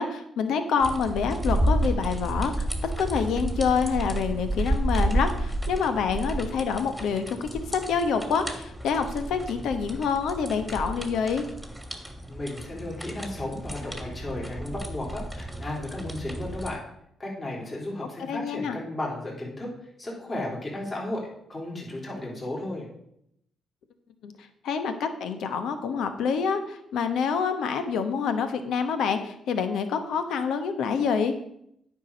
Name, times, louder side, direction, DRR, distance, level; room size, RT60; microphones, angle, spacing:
voice 1, 0.0-11.4 18.3-18.8 24.2-24.3 24.6-31.3, left 6 dB, 75° left, 8 dB, 1.1 m, -27 dB
sound 1, 0.8-16.7, right 1 dB, ahead, 2.0 m, -31 dB
voice 2, 12.3-16.8 17.2-19.7 20.0-22.9, left 1 dB, 30° left, -3 dB, 3.6 m, -34 dB
9.4 x 4.8 x 6.8 m, 0.75 s
supercardioid pair, 70°, 0 cm